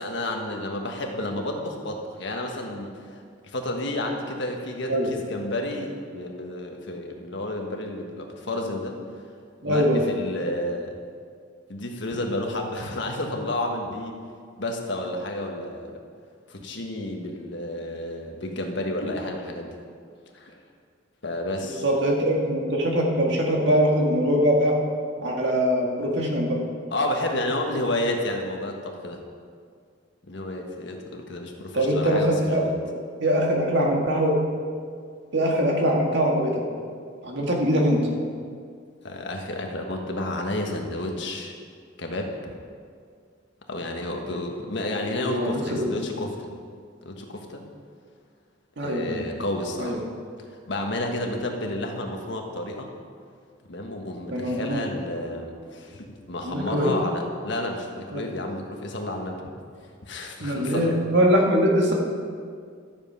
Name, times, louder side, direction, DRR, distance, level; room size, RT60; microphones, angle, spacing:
voice 1, 0.0-9.0 9.6-10.9 11.7-14.2 14.6-15.9 16.5-19.8 20.3-20.6 21.2-21.8 26.9-29.2 30.2-32.8 39.0-41.5 42.0-42.3 43.7-46.5 47.0-47.6 48.8-50.1 50.5-52.9 53.6-59.3 60.1-60.9, left 1 dB, 70° left, 2 dB, 1.5 m, -31 dB
voice 2, 9.6-10.1 21.6-24.8 25.2-26.6 31.7-32.6 33.2-34.4 35.3-36.6 37.2-38.0 45.1-45.9 48.8-49.2 49.8-50.0 54.3-54.9 56.4-57.0 58.1-58.2 60.4-61.9, equal, 65° right, 0 dB, 1.8 m, -22 dB
13.0 x 7.5 x 5.5 m, 2.1 s
head